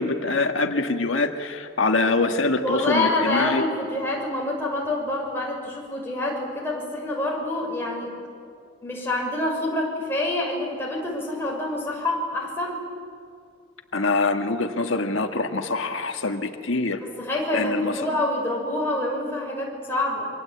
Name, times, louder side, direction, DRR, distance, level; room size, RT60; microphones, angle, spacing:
voice 1, 0.0-3.6 13.9-17.0 17.5-17.9, left 3 dB, 90° left, 5 dB, 1.6 m, -24 dB
voice 2, 2.6-8.1 8.8-12.8 17.0-20.3, left 1 dB, 10° left, -2 dB, 6.2 m, -27 dB
27.5 x 24.0 x 8.6 m, 2.3 s
head